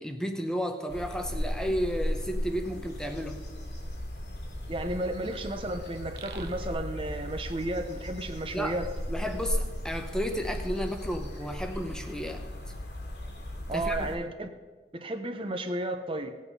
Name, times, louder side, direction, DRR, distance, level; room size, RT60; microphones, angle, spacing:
voice 1, 0.0-3.4 8.5-8.8 9.1-12.5 13.7-14.1, equal, 5° left, 5 dB, 0.7 m, -32 dB
sound 1, 0.9-14.1, equal, 80° left, 2.7 m, -36 dB
voice 2, 4.7-8.9 13.7-14.5 14.9-16.4, right 1 dB, 30° right, 7 dB, 0.7 m, -33 dB
sound 2, 6.2-8.8, right 3 dB, 60° right, 0.9 m, -45 dB
17.5 x 8.4 x 5.4 m, 1.3 s
head